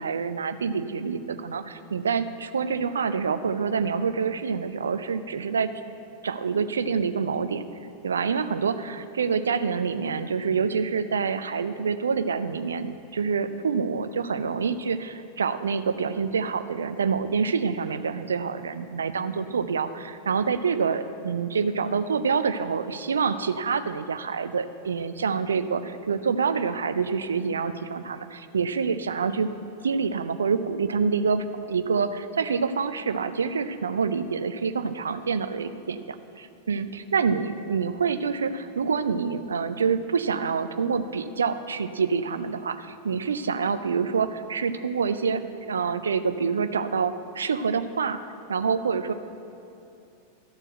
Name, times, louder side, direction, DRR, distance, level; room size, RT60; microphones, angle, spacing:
voice 1, 0.0-5.7 6.2-7.6 8.0-29.5 29.8-48.2 48.5-49.1, right 5 dB, 70° right, 11 dB, 0.4 m, -27 dB
13.0 x 4.5 x 7.7 m, 2.7 s
figure-of-eight pair, 90°, 0 cm